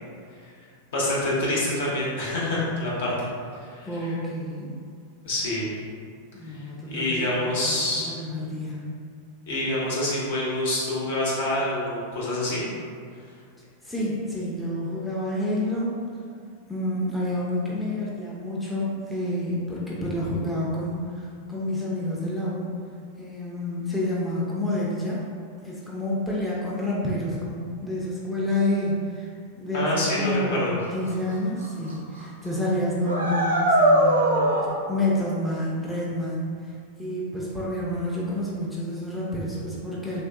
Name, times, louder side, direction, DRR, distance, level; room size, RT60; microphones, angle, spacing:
voice 1, 0.9-3.3 3.7-4.1 5.2-5.7 6.5-8.2 9.5-12.6 29.7-30.8, left 1 dB, 55° left, -6 dB, 0.8 m, -26 dB
voice 2, 3.8-4.7 6.3-7.8 8.1-8.9 13.8-15.9 16.7-22.7 23.2-25.2 25.6-29.3 29.5-36.7 37.0-40.2, left 1 dB, ahead, -7 dB, 0.5 m, -29 dB
sound 1, 31.1-31.2 31.6-31.9 32.2-32.3 33.0-34.6, right 1 dB, 70° right, 0.4 m, -20 dB
3.0 x 2.5 x 2.3 m, 2.2 s
figure-of-eight pair, 90°, 0 cm